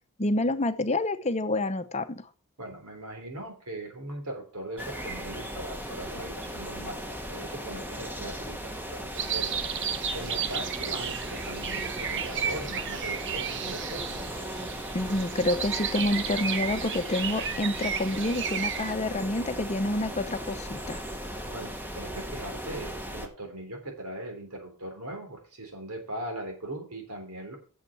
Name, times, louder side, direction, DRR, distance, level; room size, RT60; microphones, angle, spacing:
voice 1, 0.2-2.2 14.9-21.0, left 1 dB, 30° left, 10 dB, 0.7 m, -28 dB
voice 2, 2.6-14.0 21.1-27.6, right 1 dB, 85° right, 3 dB, 3.6 m, -40 dB
sound 1, 4.8-23.3, equal, 10° right, 1.1 m, -37 dB
sound 2, 9.1-18.9, right 8 dB, 55° right, 0.8 m, -33 dB
8.2 x 7.3 x 6.0 m, 0.38 s
head